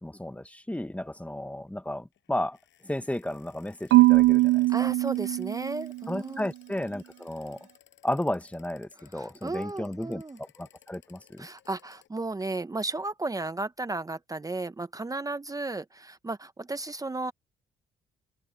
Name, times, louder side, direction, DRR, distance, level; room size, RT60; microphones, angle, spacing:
voice 1, 0.0-2.6 2.8-4.9 6.1-7.6 8.0-11.5, left 1 dB, 5° left, 1.4 m, -33 dB
sound 1, 2.1-12.1, left 10 dB, 70° left, 6.5 m, -60 dB
Marimba xylophone / Wood, 3.9-6.1, right 20 dB, 75° right, 0.4 m, -21 dB
voice 2, 4.7-6.5 9.1-10.4 11.4-17.3, right 2 dB, 15° right, 0.8 m, -34 dB
cardioid pair, 90°, 20 cm